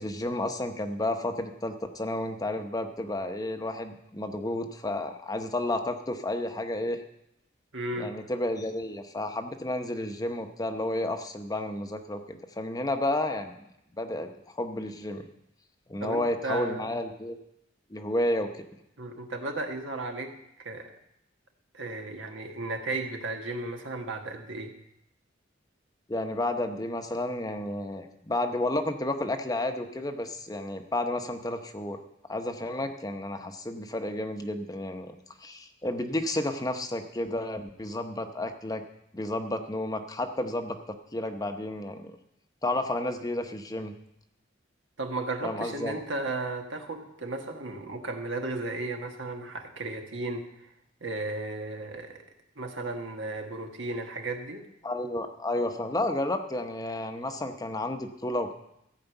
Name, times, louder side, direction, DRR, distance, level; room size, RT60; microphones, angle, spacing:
voice 1, 0.0-7.0 8.0-13.6 14.0-15.3 15.9-17.4 17.9-18.6 26.1-32.0 32.3-35.2 35.4-38.8 39.1-40.8 41.1-42.2 42.6-43.9 45.4-46.0 54.8-58.5, left 1 dB, 20° left, 6 dB, 0.8 m, -31 dB
voice 2, 7.7-8.2 16.0-17.0 19.0-20.9 21.7-24.7 45.0-50.7 51.0-52.2 52.5-54.6, right 2 dB, 75° right, 4 dB, 1.4 m, -35 dB
14.5 x 5.0 x 7.9 m, 0.81 s
head